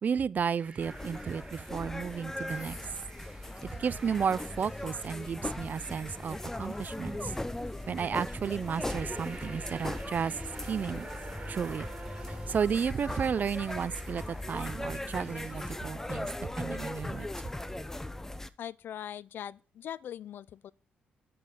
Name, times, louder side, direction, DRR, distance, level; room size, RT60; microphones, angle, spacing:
voice 1, 0.0-2.7 3.8-7.3 7.9-10.3 10.7-11.1 11.5-11.9 12.5-16.3 16.6-17.3, right 6 dB, 50° right, 0.4 m, -33 dB
sound 1, 0.6-15.7, right 3 dB, 30° right, 3.4 m, -49 dB
sound 2, 0.8-18.5, left 1 dB, 10° left, 0.7 m, -39 dB
voice 2, 18.6-20.7, left 10 dB, 65° left, 0.4 m, -41 dB
9.4 x 6.7 x 3.7 m
supercardioid pair, 55°, 4 cm